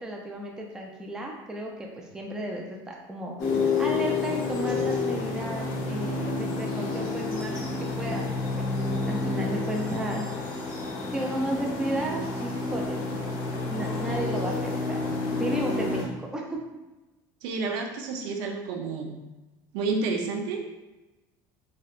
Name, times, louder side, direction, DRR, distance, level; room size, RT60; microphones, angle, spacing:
voice 1, 0.0-10.4 11.1-13.1 13.3-15.0 15.4-16.6, right 1 dB, 10° right, 0 dB, 0.4 m, -34 dB
sound 1, 3.4-16.0, left 3 dB, 60° left, 0.7 m, -29 dB
voice 2, 17.4-19.1 19.7-20.6, right 4 dB, 80° right, 2 dB, 0.5 m, -30 dB
3.2 x 2.7 x 2.4 m, 1.1 s
cardioid pair, 155°, 8 cm